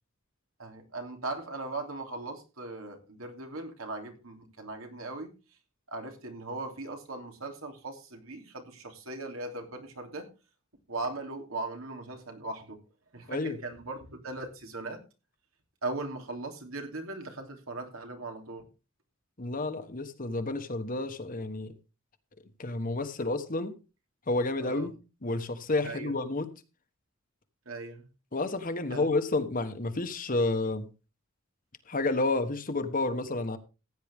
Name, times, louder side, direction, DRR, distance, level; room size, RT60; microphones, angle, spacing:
voice 1, 0.6-5.3 5.9-10.3 10.9-12.8 13.1-15.0 15.8-18.7 24.6-24.9 25.8-26.1 27.6-28.0 28.9-29.1, right 2 dB, 85° right, 3.0 m, -39 dB
voice 2, 13.3-13.6 19.4-21.8 22.6-23.8 24.3-24.9 25.2-26.5 28.3-30.9 31.9-33.6, left 2 dB, 40° left, 1.3 m, -30 dB
15.5 x 9.5 x 3.6 m
head